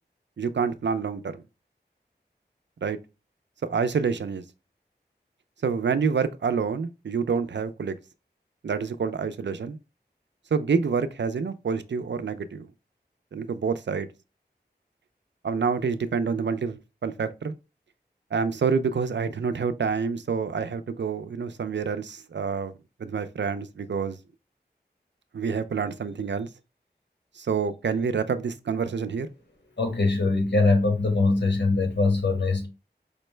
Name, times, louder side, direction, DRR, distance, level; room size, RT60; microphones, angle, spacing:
voice 1, 0.4-1.4 2.8-3.0 3.7-4.4 5.6-7.9 8.6-9.8 10.5-12.7 13.3-14.1 15.4-17.5 18.3-22.7 23.0-24.2 25.3-26.5 27.4-29.3, right 5 dB, 85° right, 0.4 m, -27 dB
voice 2, 29.8-32.7, left 3 dB, 75° left, 1.2 m, -22 dB
5.0 x 2.1 x 3.1 m
wide cardioid pair, 45°, 18 cm